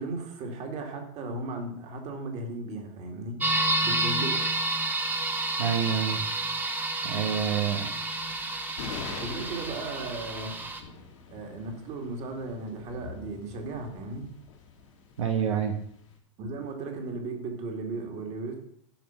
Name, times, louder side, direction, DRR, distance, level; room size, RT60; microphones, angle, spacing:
voice 1, 0.0-3.4 3.8-4.4 9.2-10.5 11.3-14.3 16.4-18.6, right 2 dB, 45° right, 3 dB, 2.6 m, -36 dB
sound 1, 3.4-10.8, right 2 dB, 10° right, 1.2 m, -30 dB
voice 2, 5.6-6.2 7.0-7.9 15.2-15.7, right 8 dB, 80° right, 5 dB, 1.1 m, -27 dB
sound 2, 7.6-16.1, left 5 dB, 80° left, 3.0 m, -44 dB
11.5 x 5.2 x 6.0 m, 0.68 s
hypercardioid pair, 110°, 16 cm